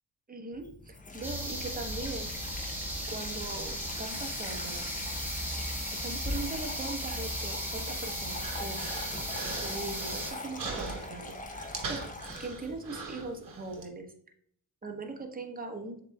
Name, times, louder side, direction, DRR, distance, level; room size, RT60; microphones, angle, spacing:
voice 1, 0.3-2.3 3.1-4.9 5.9-9.0 9.6-14.1 14.8-16.0, right 3 dB, 20° right, 3 dB, 1.0 m, -40 dB
Water tap faucet / Sink (filling or washing), 0.5-12.7, left 2 dB, 20° left, 0.8 m, -42 dB
sound 1, 1.2-10.3, equal, 5° right, 1.4 m, -36 dB
Human voice, 7.6-13.8, right 4 dB, 50° right, 1.1 m, -42 dB
7.2 x 2.9 x 2.3 m, 0.65 s
supercardioid pair, 55°, 42 cm